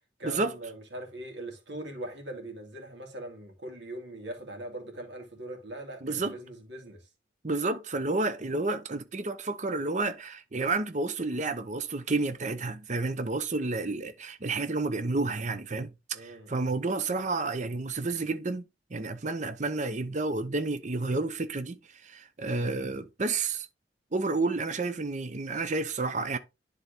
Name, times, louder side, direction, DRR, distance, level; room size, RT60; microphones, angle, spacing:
voice 1, 0.2-7.1 16.1-16.7, right 1 dB, 85° right, 2.5 m, -41 dB
voice 2, 6.0-6.3 7.4-15.9 16.2-18.6 18.9-23.7 24.1-26.4, right 3 dB, 40° right, 0.8 m, -30 dB
10.5 x 4.0 x 3.4 m
head